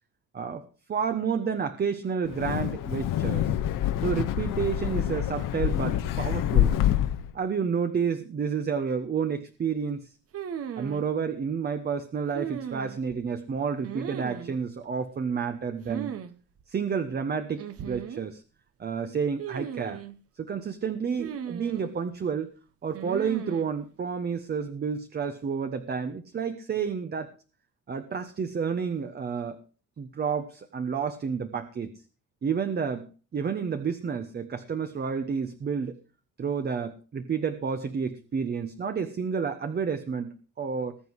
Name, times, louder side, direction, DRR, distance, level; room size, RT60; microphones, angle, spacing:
voice 1, 0.3-3.5 4.0-6.8 7.3-10.1 10.8-16.1 16.7-18.4 18.8-20.0 20.4-22.5 22.8-27.3 27.9-29.6 30.0-31.9 32.4-36.0 36.4-41.0, right 6 dB, 30° right, 9 dB, 1.2 m, -30 dB
Wind, 2.2-7.3, left 11 dB, 85° left, 1.8 m, -26 dB
sound 1, 10.3-11.0 12.3-13.2 13.8-14.6 15.8-16.3 16.6-16.7 17.6-18.3 19.4-20.2 21.2-22.0 22.9-23.7, right 9 dB, 45° right, 1.3 m, -37 dB
20.0 x 7.9 x 4.8 m, 0.36 s
cardioid pair, 160°, 32 cm